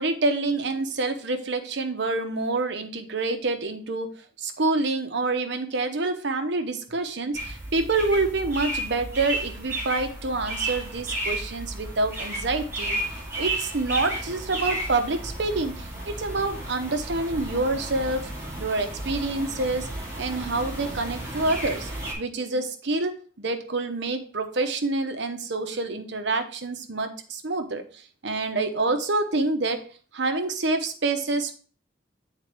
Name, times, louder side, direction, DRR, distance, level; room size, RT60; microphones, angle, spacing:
voice 1, 0.0-4.1 4.4-13.0 13.4-18.2 18.6-19.9 20.2-21.9 22.2-27.8 28.2-29.8 30.1-31.5, right 3 dB, 60° right, 7 dB, 0.8 m, -27 dB
sound 1, 7.3-22.1, right 1 dB, 15° right, 2.1 m, -33 dB
8.2 x 4.1 x 3.4 m, 0.41 s
head